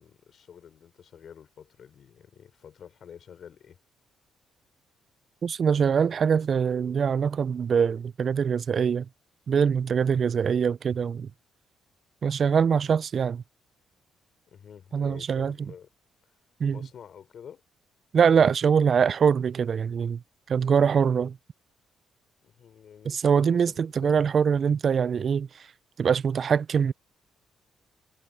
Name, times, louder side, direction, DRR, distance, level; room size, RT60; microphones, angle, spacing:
voice 1, 0.0-3.8 14.5-15.9 16.7-17.6 22.4-24.2, left 8 dB, 60° left, 3.3 m, -48 dB
voice 2, 5.4-9.1 9.5-11.3 12.2-13.4 14.9-15.5 16.6-16.8 18.1-20.2 20.5-21.4 23.0-25.7 26.0-26.9, right 7 dB, 50° right, 0.3 m, -23 dB
cardioid pair, 90°, 0 cm